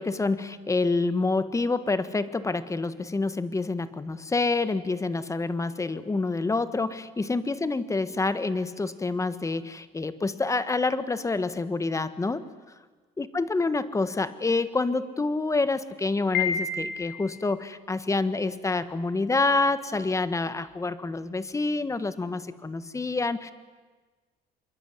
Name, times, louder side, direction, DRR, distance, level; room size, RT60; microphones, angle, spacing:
voice 1, 0.0-12.5 13.2-23.5, left 3 dB, 20° left, 13 dB, 1.6 m, -27 dB
Piano, 16.3-17.4, left 6 dB, 65° left, 4.4 m, -29 dB
26.0 x 22.5 x 9.7 m, 1.4 s
cardioid pair, 110°, 17 cm